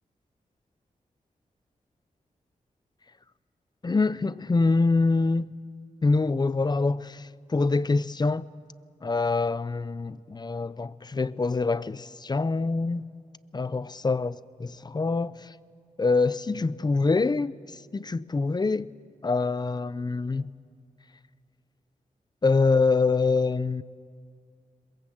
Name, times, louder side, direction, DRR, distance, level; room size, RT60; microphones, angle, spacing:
voice 1, 3.8-5.5 6.0-8.5 9.0-13.0 13.5-15.5 16.0-18.9 19.2-20.5 22.4-23.8, left 3 dB, 30° left, 0.6 m, -25 dB
22.5 x 21.5 x 7.8 m
cardioid pair, 55°, 14 cm